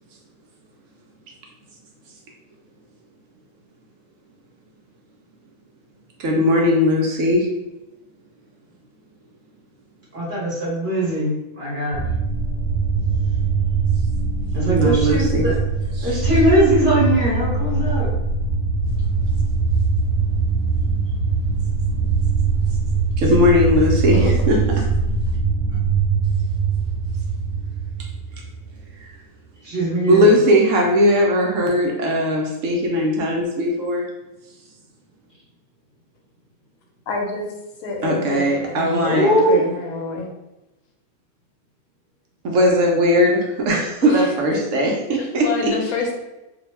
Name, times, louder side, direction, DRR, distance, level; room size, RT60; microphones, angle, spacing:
voice 1, 6.2-7.5 14.7-15.5 16.0-16.1 23.2-24.6 29.0-29.1 30.1-34.1 38.0-39.3 42.4-45.7, left 1 dB, 70° right, 0 dB, 0.9 m, -18 dB
voice 2, 10.1-12.0 14.5-15.6 16.0-18.1 29.6-30.3 39.1-39.6, equal, 40° right, -6 dB, 1.0 m, -20 dB
sound 1, 11.9-28.7, right 4 dB, 15° right, 0.6 m, -21 dB
voice 3, 37.1-37.5 37.8-40.3 44.0-46.1, left 3 dB, 85° left, 1 dB, 1.1 m, -28 dB
2.6 x 2.1 x 3.1 m, 0.98 s
omnidirectional pair, 1.5 m